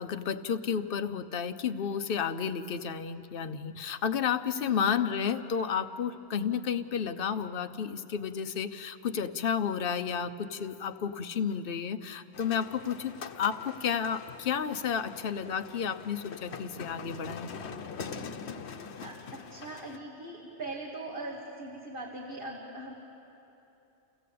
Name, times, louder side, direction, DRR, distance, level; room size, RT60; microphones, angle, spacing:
voice 1, 0.0-17.5, left 7 dB, 60° left, 9 dB, 0.9 m, -32 dB
voice 2, 4.5-5.0 18.5-22.9, right 1 dB, 55° right, -3 dB, 2.2 m, -41 dB
sound 1, 12.3-20.0, left 5 dB, 80° left, 1.1 m, -43 dB
28.5 x 16.0 x 8.5 m, 3.0 s
omnidirectional pair, 1.1 m